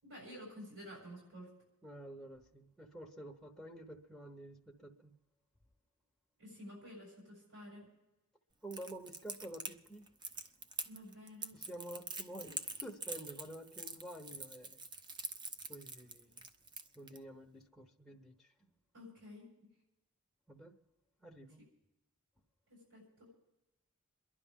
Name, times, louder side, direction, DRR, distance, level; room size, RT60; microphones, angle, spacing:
voice 1, 0.0-1.5 6.4-7.9 10.8-11.6 18.9-19.5 22.7-23.3, equal, 80° right, -5 dB, 7.2 m, -51 dB
voice 2, 1.8-5.1 8.6-10.1 11.5-14.8 15.7-16.5 17.0-18.7 20.5-20.8 21.2-21.6, right 1 dB, ahead, -1 dB, 0.9 m, -50 dB
Crackle, 8.7-17.2, right 4 dB, 20° right, 0.6 m, -44 dB
28.0 x 11.0 x 3.7 m, 1.0 s
head